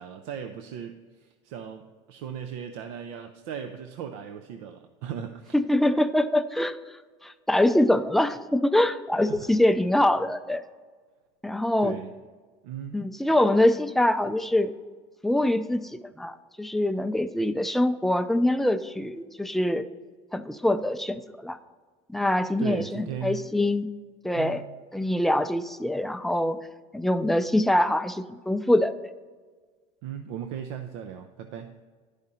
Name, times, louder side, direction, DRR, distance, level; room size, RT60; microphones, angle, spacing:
voice 1, 0.0-5.5 9.2-9.5 11.8-12.1 12.6-13.0 22.6-23.4 24.3-24.7 30.0-31.7, right 8 dB, 80° right, 7 dB, 0.5 m, -37 dB
voice 2, 5.5-6.8 7.2-10.6 11.4-12.0 12.9-14.7 15.2-19.8 20.3-21.6 22.1-23.9 24.2-24.6 24.9-26.7 26.9-28.9, left 1 dB, ahead, 9 dB, 0.4 m, -24 dB
10.5 x 4.9 x 4.2 m, 1.5 s
supercardioid pair, 90°, 15 cm